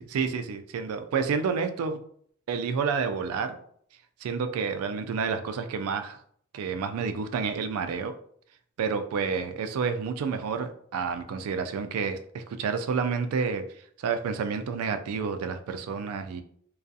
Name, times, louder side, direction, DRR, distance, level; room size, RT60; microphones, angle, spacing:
voice 1, 0.0-2.0 2.5-3.6 4.2-6.2 6.5-8.1 8.8-13.6 14.0-16.4, right 5 dB, 85° right, 9 dB, 0.3 m, -29 dB
2.3 x 2.3 x 2.6 m, 0.62 s
head